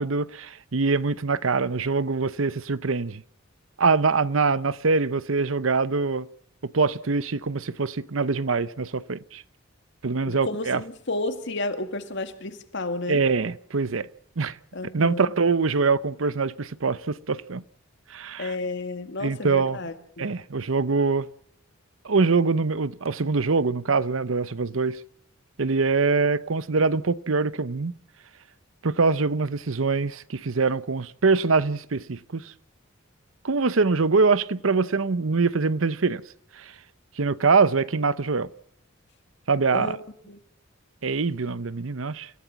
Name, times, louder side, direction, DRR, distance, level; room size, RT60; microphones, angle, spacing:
voice 1, 0.0-3.2 3.8-6.3 6.6-9.4 10.0-10.8 13.1-14.1 14.4-14.6 14.9-17.6 18.1-18.5 19.2-19.8 20.2-21.3 22.0-25.0 25.6-27.9 28.8-32.5 33.4-36.2 36.6-36.7 37.2-38.5 39.5-40.0 41.0-42.3, right 4 dB, 75° right, 0.8 m, -24 dB
voice 2, 10.2-13.2 14.7-15.3 18.4-20.3 39.7-40.4, left 2 dB, 60° left, 2.2 m, -32 dB
28.5 x 16.5 x 6.0 m
head